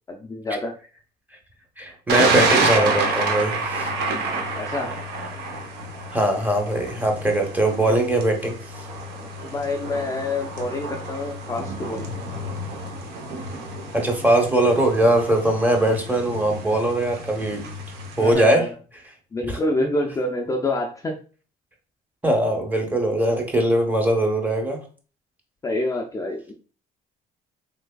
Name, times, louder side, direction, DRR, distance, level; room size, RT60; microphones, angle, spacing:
voice 1, 0.1-0.7 4.6-4.9 9.4-12.1 18.1-18.7 19.3-21.1 25.6-26.5, left 2 dB, 20° left, 1 dB, 0.4 m, -27 dB
voice 2, 1.8-3.9 6.1-8.6 13.9-17.6 18.2-18.6 19.5-19.6 22.2-24.8, right 1 dB, 10° right, 2 dB, 0.8 m, -21 dB
Thunder, 2.1-18.3, right 3 dB, 75° right, 0.7 m, -28 dB
3.3 x 3.1 x 2.2 m, 0.39 s
cardioid pair, 110°, 17 cm